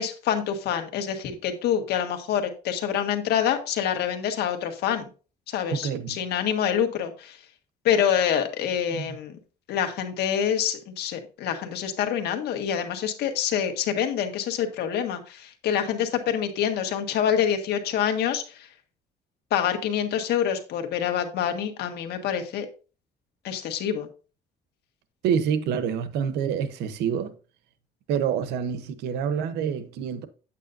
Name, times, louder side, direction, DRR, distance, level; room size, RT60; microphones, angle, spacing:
voice 1, 0.0-5.1 5.5-7.4 7.8-9.4 9.7-18.7 19.5-22.7 23.4-24.1, left 9 dB, 75° left, 1.6 m, -26 dB
voice 2, 5.7-6.2 8.9-9.2 25.2-27.3 28.1-30.3, right 7 dB, 85° right, 0.9 m, -27 dB
9.2 x 8.4 x 2.6 m
cardioid pair, 110°, 17 cm